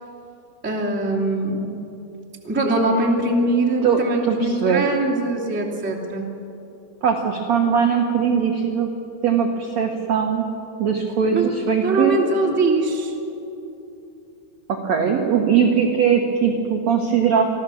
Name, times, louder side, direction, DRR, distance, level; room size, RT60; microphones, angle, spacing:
voice 1, 0.6-1.7 2.4-6.3 11.3-11.5 11.8-13.1, right 2 dB, 5° right, -4 dB, 1.6 m, -22 dB
voice 2, 3.8-4.8 7.0-8.9 9.2-10.5 10.8-12.2 14.7-17.4, right 7 dB, 65° right, 2 dB, 1.8 m, -20 dB
25.0 x 15.5 x 7.1 m, 2.9 s
omnidirectional pair, 4.9 m